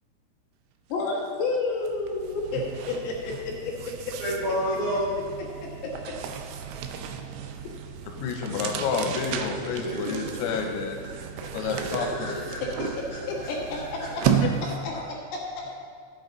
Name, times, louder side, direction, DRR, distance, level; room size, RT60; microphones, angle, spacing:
voice 1, 0.9-3.9 5.6-5.9 13.3-14.2 14.8-15.8, left 3 dB, 65° left, -4 dB, 3.2 m, -31 dB
sound 1, 1.1-1.3 1.6-15.0, right 8 dB, 85° right, 2.7 m, -33 dB
voice 2, 4.2-5.1 9.8-10.8 11.6-13.2 13.7-14.1, equal, 65° right, -8 dB, 1.9 m, -31 dB
voice 3, 8.1-11.0 11.5-12.3 14.3-14.4, left 5 dB, 85° left, 2 dB, 3.7 m, -29 dB
13.5 x 8.5 x 4.0 m, 2.1 s
omnidirectional pair, 5.9 m